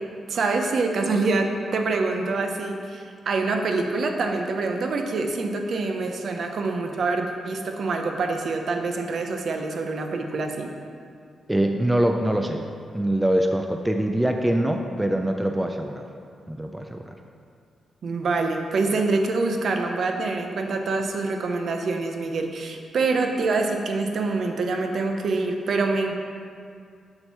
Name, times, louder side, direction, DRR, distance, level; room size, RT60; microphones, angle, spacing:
voice 1, 0.3-10.7 18.0-26.2, right 3 dB, 55° right, 4 dB, 0.7 m, -25 dB
voice 2, 11.5-12.6 12.9-16.1 16.5-17.1, right 1 dB, 5° right, 4 dB, 0.3 m, -23 dB
7.6 x 4.4 x 5.8 m, 2.2 s
wide cardioid pair, 155°, 0 cm